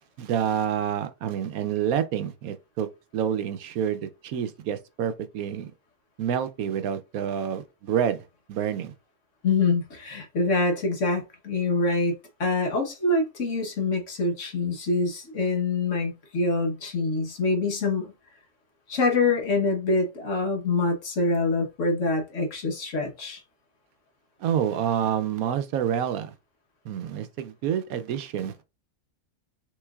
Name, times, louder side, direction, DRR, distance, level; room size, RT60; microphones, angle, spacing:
voice 1, 0.2-5.7 6.2-8.2 8.5-8.9 24.4-26.3 26.8-28.6, right 9 dB, 80° right, 1.1 m, -28 dB
voice 2, 9.4-12.1 12.4-18.1 18.9-23.4, left 3 dB, 60° left, 1.4 m, -25 dB
6.2 x 3.2 x 2.3 m
omnidirectional pair, 1.5 m